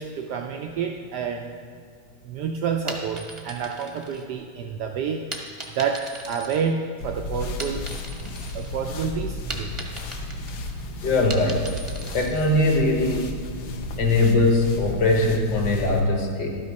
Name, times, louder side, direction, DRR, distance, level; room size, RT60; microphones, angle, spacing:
voice 1, 0.0-1.5 2.2-5.3 5.7-7.9 8.5-9.9, right 6 dB, 90° right, 3 dB, 0.9 m, -29 dB
sound 1, 2.9-4.7 5.3-7.1 7.4-8.7 9.1-12.5, right 2 dB, 30° right, 0.5 m, -38 dB
sound 2, 7.0-16.0, left 1 dB, 75° left, 1.5 m, -33 dB
voice 2, 11.0-11.7 12.1-13.3 14.0-16.6, left 2 dB, 55° left, 2 dB, 1.7 m, -21 dB
12.0 x 6.3 x 5.2 m, 2.2 s
omnidirectional pair, 2.3 m